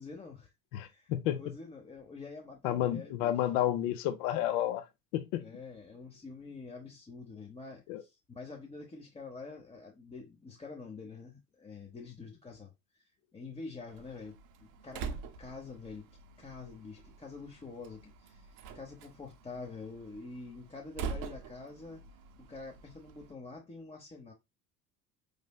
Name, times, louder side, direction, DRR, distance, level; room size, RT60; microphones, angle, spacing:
voice 1, 0.0-3.3 5.4-12.7 13.3-16.1 16.4-22.0 22.4-24.3, left 4 dB, 15° left, 0.7 m, -47 dB
voice 2, 0.7-1.4 2.6-4.8 5.1-5.5 7.9-8.0, left 12 dB, 55° left, 0.7 m, -31 dB
Slam, 13.9-23.3, right 5 dB, 45° right, 0.8 m, -45 dB
4.9 x 3.3 x 2.3 m
figure-of-eight pair, 65°, 48 cm